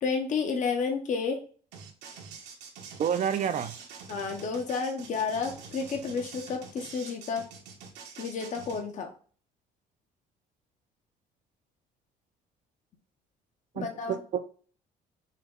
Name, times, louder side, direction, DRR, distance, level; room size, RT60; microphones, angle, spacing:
voice 1, 0.0-1.4 4.1-7.5 8.2-9.1 13.8-14.2, left 5 dB, 45° left, 4 dB, 0.8 m, -31 dB
sound 1, 1.7-8.8, right 5 dB, 85° right, 1.3 m, -46 dB
voice 2, 3.0-3.7 13.8-14.4, right 8 dB, 45° right, 10 dB, 0.5 m, -29 dB
5.6 x 2.2 x 3.6 m, 0.42 s
cardioid pair, 110°, 17 cm